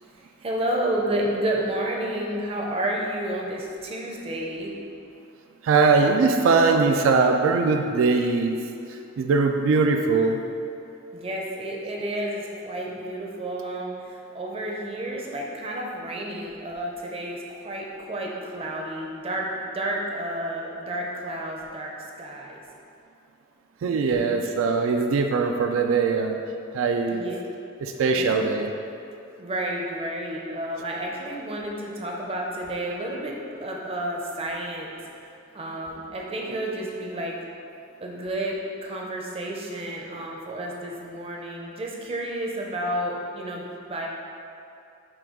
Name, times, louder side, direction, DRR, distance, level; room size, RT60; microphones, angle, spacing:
voice 1, 0.4-4.7 11.1-21.9 22.2-22.6 24.0-24.4 27.1-27.4 28.1-28.5 29.4-35.2 35.5-37.4 38.0-44.1, right 1 dB, 30° right, -1 dB, 0.5 m, -31 dB
voice 2, 5.6-8.6 8.9-10.4 23.8-26.4 26.7-27.3 27.8-28.7, right 4 dB, 85° right, 4 dB, 0.3 m, -21 dB
5.9 x 2.3 x 3.6 m, 2.5 s
head